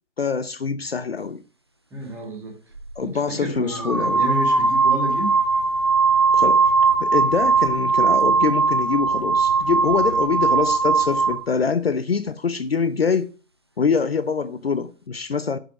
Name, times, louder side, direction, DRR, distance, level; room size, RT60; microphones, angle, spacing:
voice 1, 0.2-1.4 3.0-4.2 6.3-6.6 7.0-13.3 13.8-15.6, left 5 dB, 55° left, 0.7 m, -24 dB
voice 2, 1.9-2.5 3.0-5.3, right 1 dB, 5° right, 2.4 m, -30 dB
sound 1, 2.8-2.9 3.7-11.4, right 4 dB, 20° right, 0.5 m, -19 dB
11.0 x 7.9 x 6.2 m
figure-of-eight pair, 145°, 38 cm